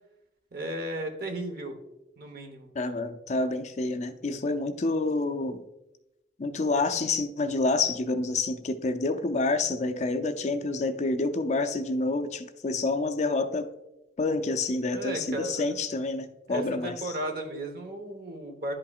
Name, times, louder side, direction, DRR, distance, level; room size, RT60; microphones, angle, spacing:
voice 1, 0.5-1.8 2.2-2.7 14.9-15.7 16.5-18.7, right 1 dB, 55° right, 4 dB, 1.0 m, -35 dB
voice 2, 2.7-5.6 6.4-13.7 14.2-17.1, left 3 dB, 40° left, 9 dB, 0.4 m, -28 dB
11.0 x 5.6 x 2.4 m, 0.93 s
head